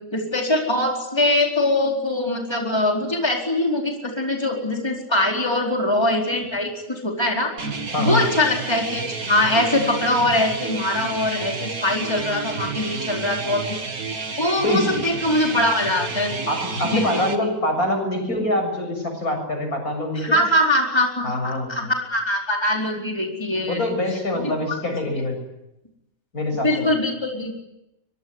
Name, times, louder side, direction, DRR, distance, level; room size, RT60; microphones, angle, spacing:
voice 1, 0.1-7.5 8.0-13.8 14.4-16.3 16.9-17.5 20.2-23.8 24.3-24.8 26.6-27.6, left 1 dB, 15° left, 1 dB, 4.5 m, -22 dB
sound 1, 7.6-17.4, right 4 dB, 75° right, 2.8 m, -30 dB
voice 2, 16.5-20.4 21.2-21.9 23.6-25.4 26.3-26.9, left 1 dB, 80° left, 5 dB, 7.9 m, -24 dB
24.5 x 23.5 x 9.8 m, 0.88 s
omnidirectional pair, 1.5 m